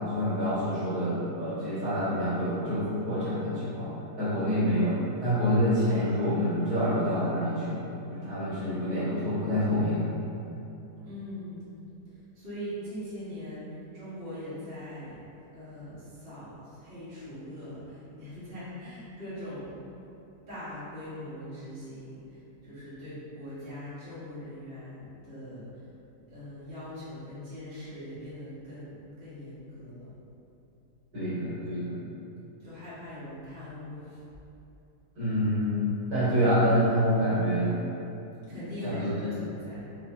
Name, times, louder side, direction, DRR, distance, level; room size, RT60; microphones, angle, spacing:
voice 1, 0.0-7.8 8.1-10.0 31.1-32.0 35.2-37.7 38.5-39.1, equal, 70° right, -12 dB, 1.9 m, -27 dB
voice 2, 11.0-11.6 12.3-13.7 13.9-15.2 15.5-19.7 20.5-25.9 26.3-30.1 32.6-34.2 38.5-39.8, left 1 dB, 40° right, -13 dB, 1.4 m, -41 dB
4.5 x 2.6 x 2.7 m, 2.8 s
omnidirectional pair, 1.7 m